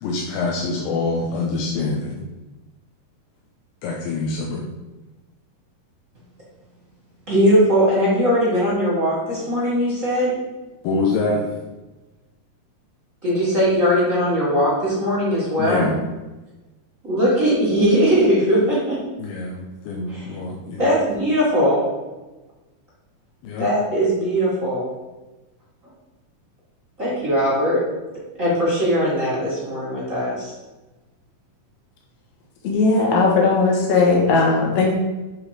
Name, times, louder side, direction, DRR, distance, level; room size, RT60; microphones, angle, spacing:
voice 1, 0.0-2.2 3.8-4.7 10.8-11.5 15.6-16.0 19.2-20.9 23.4-23.7, left 3 dB, 75° left, -2 dB, 2.4 m, -25 dB
voice 2, 7.3-10.4 13.2-15.9 17.0-19.0 20.1-20.4 20.8-21.9 23.6-24.9 27.0-27.9 28.4-30.5, equal, 35° right, -7 dB, 1.2 m, -20 dB
voice 3, 32.6-34.9, left 3 dB, 60° left, -2 dB, 1.9 m, -17 dB
7.8 x 3.8 x 4.9 m, 1.1 s
omnidirectional pair, 4.5 m